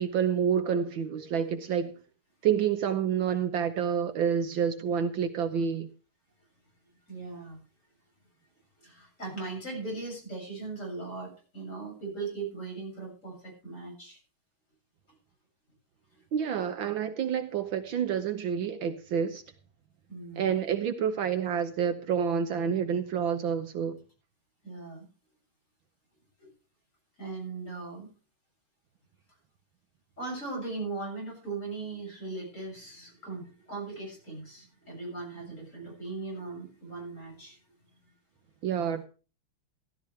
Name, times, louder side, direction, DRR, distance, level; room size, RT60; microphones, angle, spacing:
voice 1, 0.0-1.9 2.4-5.9 16.3-19.4 20.4-24.0 38.6-39.0, right 8 dB, 70° right, 1.6 m, -28 dB
voice 2, 7.1-7.6 8.8-14.2 20.1-20.6 24.6-25.1 26.4-26.5 27.2-28.1 30.2-37.6, right 3 dB, 35° left, 7.5 m, -39 dB
16.0 x 12.0 x 3.3 m
omnidirectional pair, 2.4 m